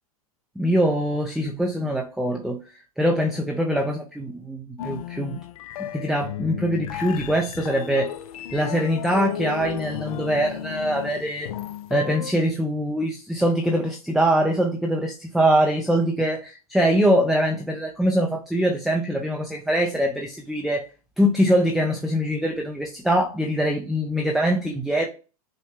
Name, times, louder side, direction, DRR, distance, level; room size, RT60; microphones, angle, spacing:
voice 1, 0.6-2.6 3.0-5.4 5.8-8.1 8.5-11.5 11.9-20.9 21.2-25.1, equal, ahead, 0.4 m, -23 dB
sound 1, 4.8-12.3, left 10 dB, 70° left, 0.4 m, -34 dB
5.5 x 2.1 x 3.2 m
hypercardioid pair, 130°, 19 cm